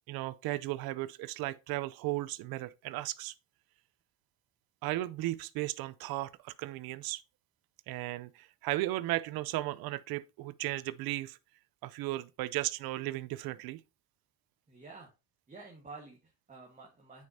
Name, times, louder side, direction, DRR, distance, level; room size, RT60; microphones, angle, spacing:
voice 1, 0.1-3.3 4.8-7.2 7.9-11.4 11.8-13.8, right 17 dB, 75° right, 0.6 m, -35 dB
voice 2, 14.7-15.1 15.5-17.3, right 3 dB, 20° right, 1.5 m, -50 dB
9.4 x 5.3 x 2.8 m
cardioid pair, 105°, 37 cm